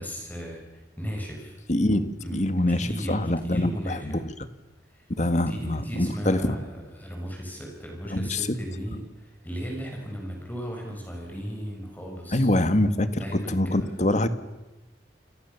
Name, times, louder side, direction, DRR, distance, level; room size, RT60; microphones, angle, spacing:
voice 1, 0.0-1.6 2.2-2.4 2.7-4.2 4.9-5.1 5.5-12.5 13.1-14.0, equal, 10° left, 0 dB, 6.8 m, -36 dB
voice 2, 1.7-4.3 5.1-6.6 8.1-8.5 12.3-14.3, left 1 dB, 40° left, 10 dB, 1.9 m, -25 dB
30.0 x 27.5 x 7.1 m, 1.1 s
head